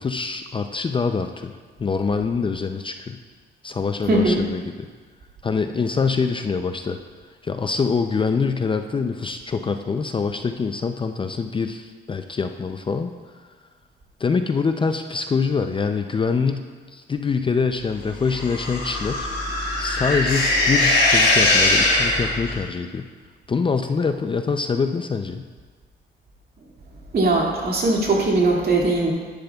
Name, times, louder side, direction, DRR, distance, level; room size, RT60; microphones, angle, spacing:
voice 1, 0.0-3.2 3.6-4.9 5.4-7.0 7.4-13.1 14.2-19.3 19.8-23.1 23.5-25.4, left 5 dB, 25° left, 7 dB, 0.4 m, -25 dB
voice 2, 4.1-4.4 27.1-29.1, right 2 dB, 50° right, -2 dB, 2.3 m, -20 dB
sound 1, 18.3-22.6, left 2 dB, 70° left, 2.8 m, -20 dB
11.5 x 10.5 x 2.3 m, 1.5 s
cardioid pair, 90°, 20 cm